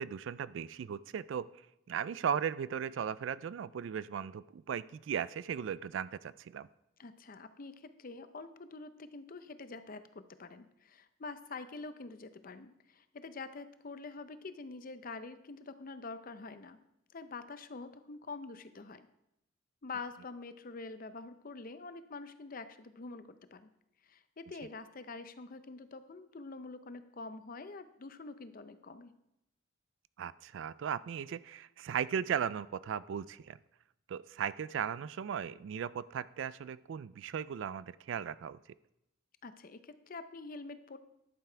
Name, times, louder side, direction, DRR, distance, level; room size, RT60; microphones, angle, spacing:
voice 1, 0.0-1.5 1.9-6.7 30.2-33.6 34.1-38.6, right 8 dB, 65° right, 18 dB, 0.3 m, -37 dB
voice 2, 7.0-16.8 17.1-19.1 19.8-23.7 24.0-29.1 39.4-41.0, left 3 dB, 45° left, 11 dB, 0.6 m, -46 dB
11.5 x 6.9 x 4.5 m, 0.83 s
head